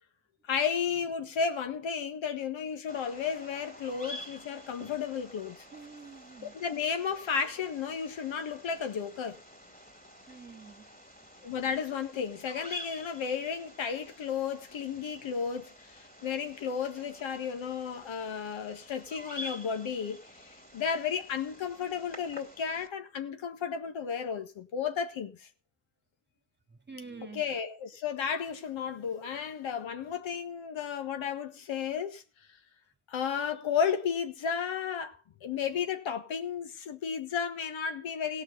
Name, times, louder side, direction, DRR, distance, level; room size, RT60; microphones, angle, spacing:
voice 1, 0.5-5.6 6.4-9.4 11.4-25.5 27.3-32.2 33.1-38.4, left 7 dB, 65° left, 1.8 m, -33 dB
Bird vocalization bird call bird song, 2.9-22.9, equal, 15° left, 2.8 m, -49 dB
voice 2, 5.7-6.6 10.3-10.9 26.7-27.4, right 4 dB, 20° right, 2.0 m, -47 dB
17.0 x 6.1 x 5.4 m
supercardioid pair, 70°, 50 cm